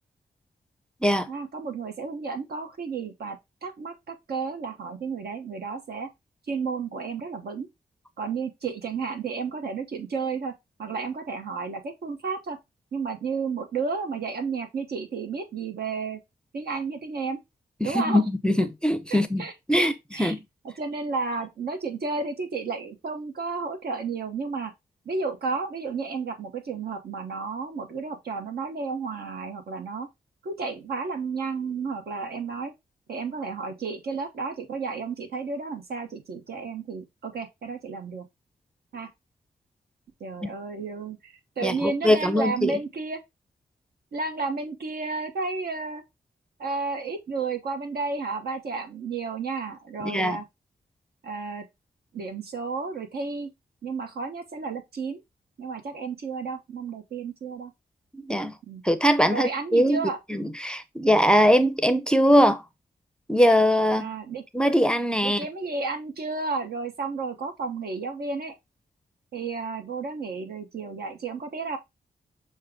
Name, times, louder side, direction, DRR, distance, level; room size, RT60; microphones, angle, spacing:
voice 1, 1.3-6.1 6.5-7.7 8.2-10.5 10.8-12.6 12.9-16.2 16.5-17.4 17.8-18.2 19.1-20.3 20.8-24.7 25.0-30.1 30.4-32.7 33.1-38.2 38.9-39.1 40.2-43.2 44.1-46.0 46.6-50.4 51.2-51.6 52.1-53.5 53.8-55.2 55.6-57.7 58.7-58.8 59.3-60.2 64.0-64.4 65.2-68.5 69.3-71.8, right 4 dB, 75° right, 1.0 m, -32 dB
voice 2, 17.8-19.9 20.2-20.4 40.4-40.5 41.6-42.8 50.0-50.4 58.1-58.5 58.8-62.6 63.3-64.1 64.5-65.5, equal, 5° left, 0.5 m, -22 dB
6.4 x 2.2 x 3.5 m
cardioid pair, 75°, 16 cm